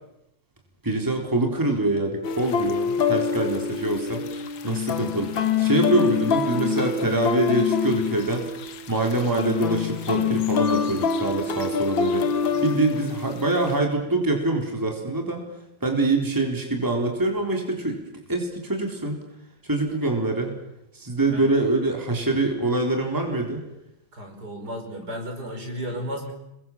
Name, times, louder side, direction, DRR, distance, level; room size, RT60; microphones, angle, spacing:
voice 1, 0.8-4.2 4.6-8.5 8.9-12.3 12.6-15.4 15.8-18.0 18.3-19.2 19.7-20.5 20.9-23.6, right 2 dB, 10° right, 2 dB, 3.8 m, -24 dB
sound 1, 2.2-13.8, left 6 dB, 80° left, 2.1 m, -26 dB
voice 2, 24.1-26.3, equal, 55° right, 3 dB, 5.8 m, -33 dB
29.5 x 22.0 x 7.3 m, 0.85 s
omnidirectional pair, 2.1 m